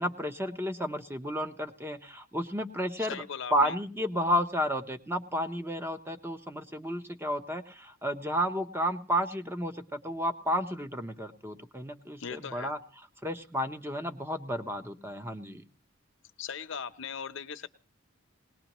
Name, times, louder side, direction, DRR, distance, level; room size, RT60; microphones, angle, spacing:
voice 1, 0.0-3.2 3.5-15.6, equal, 10° right, 7 dB, 0.8 m, -32 dB
voice 2, 3.0-3.8 12.2-12.7 16.4-17.7, left 7 dB, 65° left, 11 dB, 0.7 m, -39 dB
20.0 x 18.5 x 3.0 m, 0.38 s
head